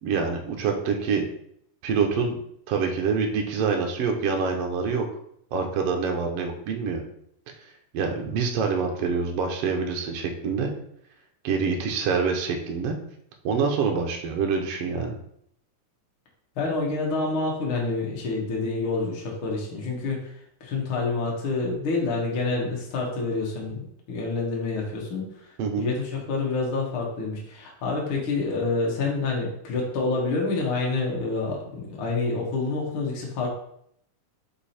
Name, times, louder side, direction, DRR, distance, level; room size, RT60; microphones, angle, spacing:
voice 1, 0.0-1.2 1.8-2.4 2.7-5.0 5.5-7.0 7.9-10.7 11.4-13.0 13.4-15.2 25.6-25.9, right 5 dB, 65° right, 2 dB, 1.7 m, -26 dB
voice 2, 16.6-20.2 20.6-25.5 25.8-33.5, left 3 dB, 50° left, -2 dB, 1.8 m, -27 dB
5.2 x 4.9 x 4.3 m, 0.70 s
omnidirectional pair, 3.6 m